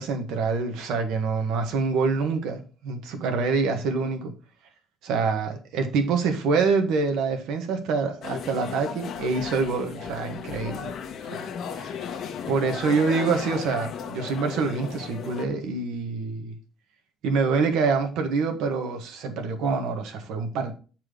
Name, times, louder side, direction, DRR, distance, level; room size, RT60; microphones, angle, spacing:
voice 1, 0.0-4.3 5.0-10.9 11.3-11.5 11.8-12.0 12.5-16.6 17.2-20.7, right 4 dB, 80° right, 1.6 m, -26 dB
sound 1, 8.2-15.5, left 7 dB, 45° left, 1.2 m, -35 dB
9.6 x 4.5 x 5.2 m
cardioid pair, 170°, 0 cm